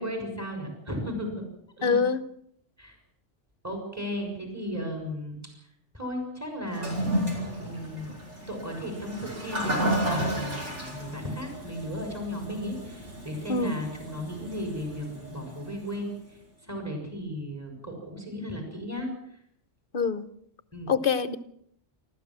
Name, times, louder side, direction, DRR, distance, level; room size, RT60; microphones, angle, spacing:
voice 1, 0.0-1.4 1.8-2.0 2.8-3.0 3.6-5.7 5.9-7.0 7.6-8.1 8.5-19.1 20.7-20.9, equal, 15° right, 3 dB, 6.0 m, -35 dB
voice 2, 1.8-2.2 13.5-13.8 19.9-20.3 20.9-21.4, left 5 dB, 50° left, 14 dB, 1.1 m, -25 dB
Toilet flush, 6.7-16.0, right 1 dB, 75° right, 6.0 m, -33 dB
28.0 x 13.5 x 7.4 m, 0.72 s
omnidirectional pair, 1.2 m